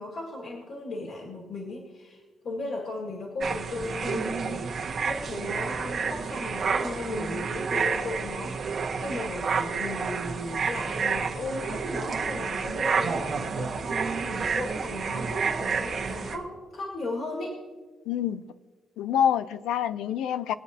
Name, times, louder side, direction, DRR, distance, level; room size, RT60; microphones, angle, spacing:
voice 1, 0.0-17.6, left 2 dB, 45° left, -1 dB, 2.1 m, -36 dB
sound 1, 3.4-16.4, right 5 dB, 40° right, 1.4 m, -30 dB
voice 2, 18.1-18.5 19.0-20.5, left 9 dB, 90° left, 13 dB, 0.5 m, -26 dB
22.0 x 8.9 x 2.9 m, 1.4 s
cardioid pair, 160°, 0 cm